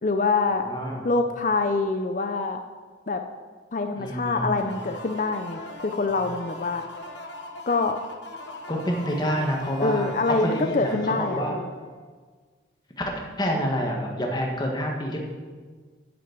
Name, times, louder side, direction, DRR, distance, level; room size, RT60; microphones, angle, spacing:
voice 1, 0.0-0.6 1.0-2.6 3.1-3.2 3.7-6.8 7.7-8.0 9.8-11.7, left 3 dB, 40° left, 6 dB, 0.5 m, -25 dB
voice 2, 0.6-1.0 4.0-4.6 8.7-11.5 13.0-13.1 13.4-15.2, equal, 20° left, 0 dB, 1.5 m, -28 dB
sound 1, 4.5-12.1, left 1 dB, 60° left, 1.1 m, -41 dB
10.0 x 6.3 x 7.8 m, 1.5 s
head